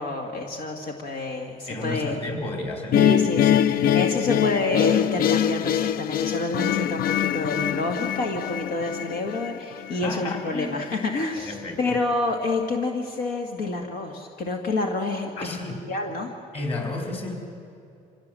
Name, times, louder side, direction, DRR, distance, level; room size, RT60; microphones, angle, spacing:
voice 1, 0.0-2.2 2.9-15.6 15.9-16.3, left 2 dB, 80° left, 2 dB, 2.0 m, -28 dB
voice 2, 1.7-3.0 9.9-11.9 15.4-15.8 16.5-17.3, left 2 dB, 35° left, 2 dB, 4.5 m, -32 dB
sound 1, 2.9-10.0, left 10 dB, 60° left, 0.5 m, -23 dB
26.0 x 16.5 x 7.6 m, 2.6 s
cardioid pair, 110°, 17 cm